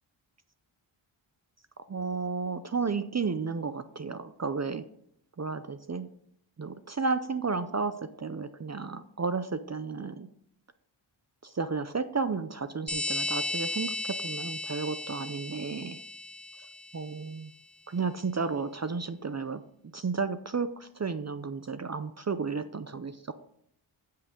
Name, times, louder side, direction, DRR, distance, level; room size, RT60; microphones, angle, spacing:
voice 1, 1.9-4.8 5.4-6.1 6.6-10.3 11.4-16.0 16.9-17.5 17.9-19.6 19.9-23.3, right 4 dB, 35° right, 11 dB, 0.6 m, -32 dB
sound 1, 12.9-17.2, left 2 dB, ahead, 0.9 m, -35 dB
15.0 x 5.7 x 5.2 m, 0.71 s
wide cardioid pair, 110°, 50 cm